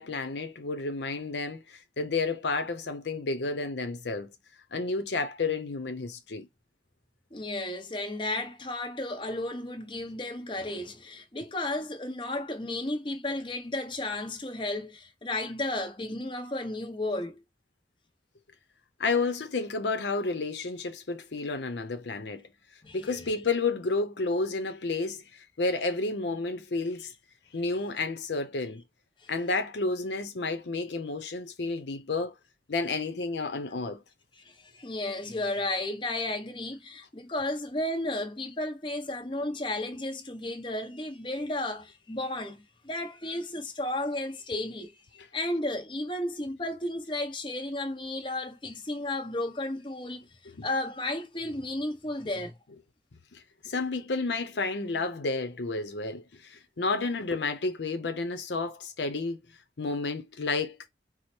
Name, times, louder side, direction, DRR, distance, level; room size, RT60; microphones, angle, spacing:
voice 1, 0.0-4.3 4.7-6.5 19.0-22.5 22.9-27.1 27.5-28.8 29.3-32.3 32.7-34.0 50.6-50.7 53.3-59.4 59.8-60.8, left 3 dB, 85° left, 0.7 m, -31 dB
voice 2, 7.3-17.4 22.8-23.3 29.2-29.3 34.4-45.0 45.3-50.2 50.6-52.6, left 1 dB, 30° left, 0.9 m, -33 dB
4.8 x 2.0 x 4.3 m
head